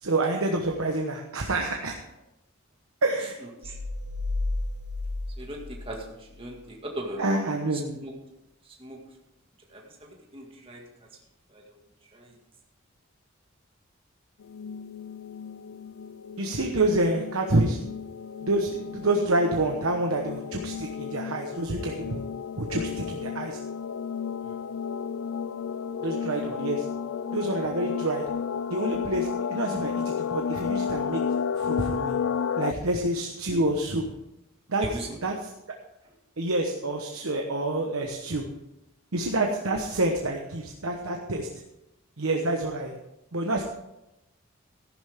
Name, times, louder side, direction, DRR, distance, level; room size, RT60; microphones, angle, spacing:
voice 1, 0.0-2.0 3.0-3.4 7.2-8.0 16.4-17.8 18.4-22.2 22.6-23.6 26.0-26.9 27.3-28.2 28.7-31.2 31.6-32.2 32.6-34.0 34.7-34.8 35.2-35.3 36.4-38.5 39.1-41.5 42.2-43.0 43.3-43.6, right 2 dB, 75° right, 2 dB, 1.2 m, -27 dB
voice 2, 3.4-3.8 5.4-7.4 7.7-8.2 8.6-9.0 9.7-11.1 11.5-11.8 12.1-12.4 16.5-16.8 24.4-24.6 34.8-35.2 36.0-36.1, right 1 dB, 25° right, -1 dB, 2.0 m, -39 dB
sound 1, 3.6-6.5, left 2 dB, 50° right, 1.3 m, -32 dB
sound 2, 14.4-32.7, left 7 dB, 70° left, 0.4 m, -32 dB
14.0 x 11.5 x 3.6 m, 0.91 s
head